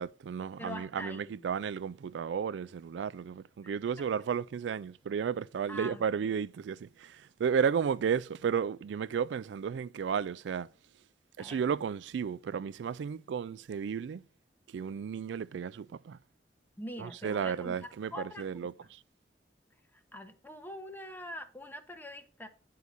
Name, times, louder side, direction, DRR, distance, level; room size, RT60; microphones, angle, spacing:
voice 1, 0.0-10.7 11.4-14.2 14.7-16.2 17.0-19.0, right 7 dB, 85° right, 0.3 m, -33 dB
voice 2, 0.6-1.4 4.0-4.1 5.7-6.3 11.4-11.6 16.8-18.7 19.9-22.5, left 1 dB, 10° left, 0.9 m, -44 dB
9.8 x 4.7 x 4.0 m
head